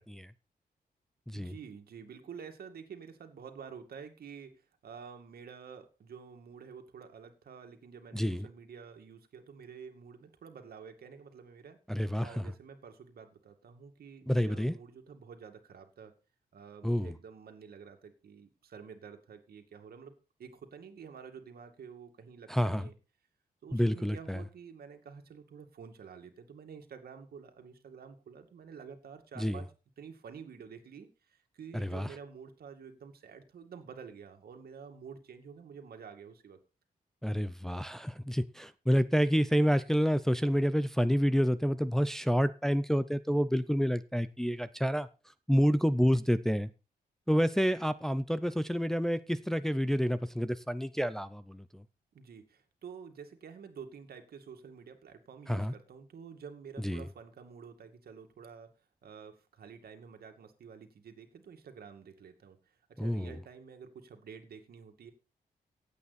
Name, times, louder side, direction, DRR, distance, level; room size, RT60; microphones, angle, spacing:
voice 1, 1.3-11.8 12.2-16.2 16.5-20.1 20.4-23.0 23.6-29.7 30.0-36.6 52.1-58.7 59.0-65.1, right 6 dB, 75° right, 5 dB, 2.3 m, -49 dB
voice 2, 8.1-8.5 11.9-12.4 14.3-14.7 16.8-17.1 22.5-22.9 23.7-24.4 29.4-29.6 31.7-32.1 37.2-45.1 45.5-46.7 47.3-51.8 55.5-55.7 56.8-57.1 63.0-63.4, equal, 5° left, 12 dB, 0.6 m, -28 dB
16.5 x 8.5 x 4.2 m, 0.32 s
wide cardioid pair, 125°, 16 cm